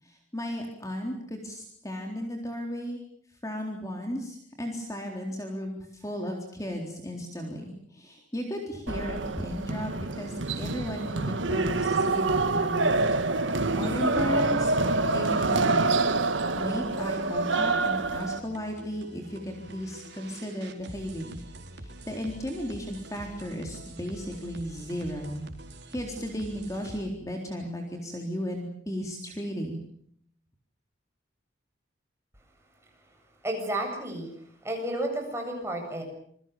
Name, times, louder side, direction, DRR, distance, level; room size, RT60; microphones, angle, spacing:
voice 1, 0.3-3.0 3.4-13.0 13.7-14.7 15.1-16.1 16.5-21.4 21.8-25.5 25.9-29.8, equal, 20° left, 2 dB, 3.9 m, -35 dB
sound 1, 8.9-18.4, right 3 dB, 85° right, 1.8 m, -26 dB
sound 2, 15.3-27.0, right 1 dB, 60° right, 4.4 m, -46 dB
voice 2, 33.4-34.3 34.6-36.0, right 1 dB, 15° right, 2 dB, 7.7 m, -31 dB
27.5 x 23.5 x 7.0 m, 0.64 s
head